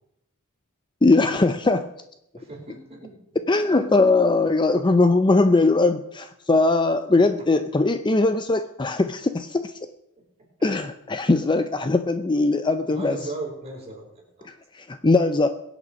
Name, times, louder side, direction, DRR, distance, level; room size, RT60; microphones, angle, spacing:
voice 1, 1.0-1.9 3.5-9.7 10.6-13.2 14.5-15.5, left 3 dB, 20° left, 9 dB, 0.5 m, -20 dB
voice 2, 2.3-3.2 12.9-14.5, right 2 dB, 30° right, -3 dB, 5.3 m, -36 dB
22.0 x 8.2 x 5.2 m, 0.81 s
head